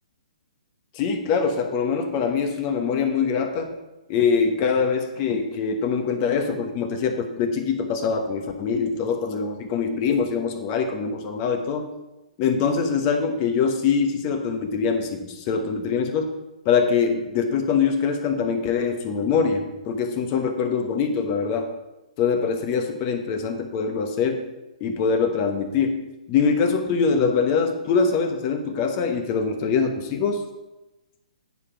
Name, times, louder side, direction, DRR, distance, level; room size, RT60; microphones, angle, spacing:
voice 1, 0.9-3.7 4.1-11.9 12.4-16.3 16.6-21.7 22.2-24.5 24.8-26.0 26.3-30.4, left 5 dB, 30° left, 5 dB, 1.1 m, -23 dB
9.8 x 4.9 x 5.6 m, 1.0 s
hypercardioid pair, 140°, 4 cm